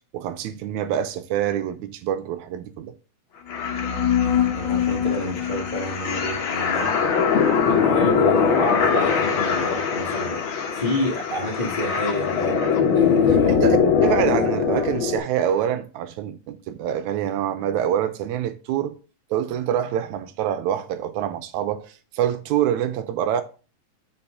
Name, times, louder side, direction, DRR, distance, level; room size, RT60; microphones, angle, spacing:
voice 1, 0.1-2.9 13.5-18.9 19.3-23.4, right 10 dB, 85° right, 2.0 m, -26 dB
sound 1, 3.5-15.2, left 6 dB, 60° left, 1.5 m, -21 dB
voice 2, 4.4-7.1 7.4-12.6 12.9-13.7, left 1 dB, 25° left, 0.9 m, -29 dB
6.9 x 4.7 x 3.6 m
omnidirectional pair, 3.4 m